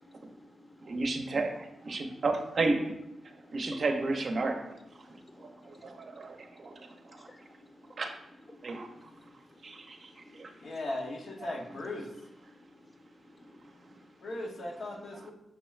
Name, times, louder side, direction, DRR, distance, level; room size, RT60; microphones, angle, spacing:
voice 1, 0.0-1.0 1.9-2.1 3.3-3.8 5.0-8.0 8.5-10.8 12.5-14.2, left 1 dB, 25° left, 4 dB, 0.6 m, -56 dB
voice 2, 0.8-2.9 3.5-4.8 5.1-7.3 8.0-8.1 8.6-8.9 9.6-10.5, right 3 dB, 60° right, 5 dB, 0.5 m, -33 dB
voice 3, 10.6-12.1 14.2-15.3, left 1 dB, 70° left, 0 dB, 0.8 m, -37 dB
5.8 x 2.3 x 3.1 m, 0.87 s
cardioid pair, 65°, 0 cm